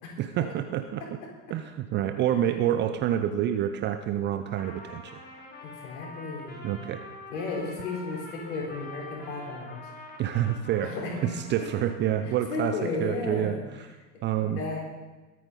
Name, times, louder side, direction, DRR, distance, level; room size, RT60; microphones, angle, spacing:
voice 1, 0.2-1.0 1.5-5.2 6.6-7.0 10.2-11.0 11.2-13.5 14.2-14.6, right 11 dB, 25° right, 8 dB, 0.5 m, -28 dB
Trumpet, 4.6-12.4, left 2 dB, 20° left, 2.6 m, -45 dB
voice 2, 5.6-6.7 7.3-9.8 10.8-11.3 11.6-11.7 12.2-13.6 14.3-14.8, left 3 dB, 55° left, -1 dB, 4.5 m, -34 dB
22.0 x 9.3 x 4.0 m, 1.2 s
figure-of-eight pair, 85°, 50 cm